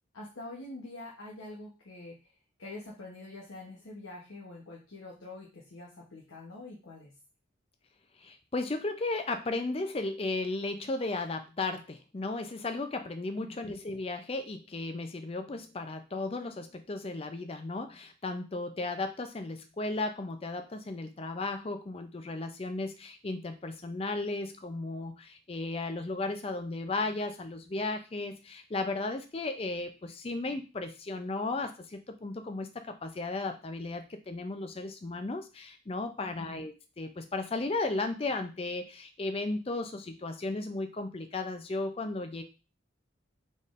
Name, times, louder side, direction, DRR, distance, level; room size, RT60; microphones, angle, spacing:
voice 1, 0.1-2.3 2.6-7.1 13.6-13.8 36.2-36.6, left 2 dB, 90° left, -4 dB, 0.9 m, -45 dB
voice 2, 8.2-42.4, left 2 dB, 30° left, 7 dB, 0.4 m, -35 dB
4.1 x 3.5 x 2.5 m, 0.31 s
head